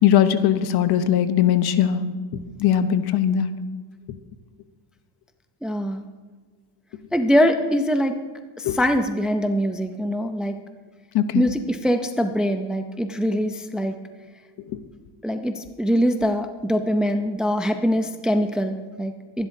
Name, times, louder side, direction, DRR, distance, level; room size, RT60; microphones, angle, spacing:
voice 1, 0.0-2.0 2.6-3.5 8.6-8.8 11.1-11.5, left 10 dB, 50° left, 11 dB, 0.9 m, -19 dB
voice 2, 5.6-6.0 7.1-8.2 8.6-10.5 11.3-13.9 15.2-19.5, equal, ahead, 7 dB, 0.5 m, -23 dB
24.5 x 12.0 x 2.7 m, 1.4 s
cardioid pair, 130°, 47 cm